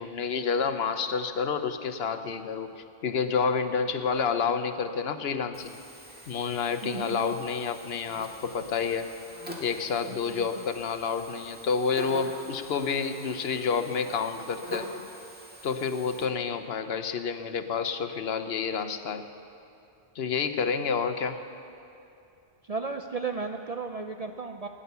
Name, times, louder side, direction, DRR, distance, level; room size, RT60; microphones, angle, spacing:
voice 1, 0.0-5.8 6.3-9.1 9.6-14.9 15.6-19.2 20.1-21.4, left 6 dB, 70° left, 9 dB, 1.0 m, -29 dB
Buzz, 5.5-16.2, equal, 10° right, 1.7 m, -45 dB
voice 2, 6.8-7.3 10.1-10.6 22.6-24.7, right 4 dB, 50° right, 5 dB, 0.5 m, -35 dB
17.0 x 9.8 x 6.8 m, 2.6 s
omnidirectional pair, 1.1 m